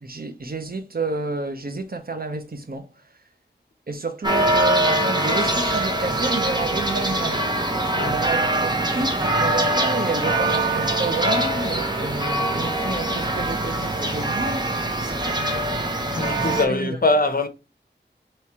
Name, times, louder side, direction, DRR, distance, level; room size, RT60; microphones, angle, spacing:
voice 1, 0.0-2.9 3.9-7.7 8.0-15.7 16.5-17.0, right 3 dB, 50° right, 0.8 m, -30 dB
sound 1, 4.2-16.7, right 1 dB, 20° right, 1.0 m, -23 dB
voice 2, 16.2-17.5, left 2 dB, 50° left, 0.7 m, -22 dB
3.1 x 2.9 x 4.6 m
wide cardioid pair, 50°, 19 cm